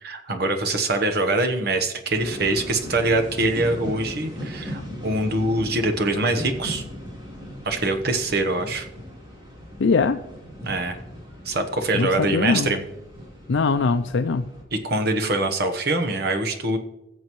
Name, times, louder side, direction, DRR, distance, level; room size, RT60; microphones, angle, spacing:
voice 1, 0.0-6.8 7.6-8.9 10.6-11.0 11.4-12.8 14.7-16.8, right 2 dB, 55° right, 6 dB, 1.1 m, -24 dB
sound 1, 2.1-14.6, equal, 25° right, 3.3 m, -38 dB
voice 2, 9.8-10.2 11.9-12.7 13.5-14.5, left 4 dB, 75° left, 7 dB, 0.5 m, -21 dB
19.5 x 7.6 x 3.1 m, 0.97 s
head